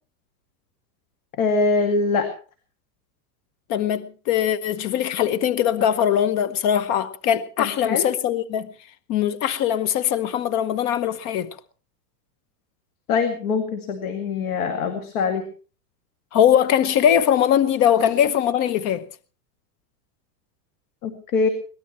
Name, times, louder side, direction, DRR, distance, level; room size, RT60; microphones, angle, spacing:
voice 1, 1.4-2.3 7.6-8.0 13.1-15.4 21.0-21.5, left 4 dB, 60° left, 2.4 m, -23 dB
voice 2, 3.7-8.7 9.1-11.5 16.3-19.0, left 10 dB, 35° left, 1.0 m, -21 dB
23.0 x 18.0 x 3.1 m
supercardioid pair, 155°, 48 cm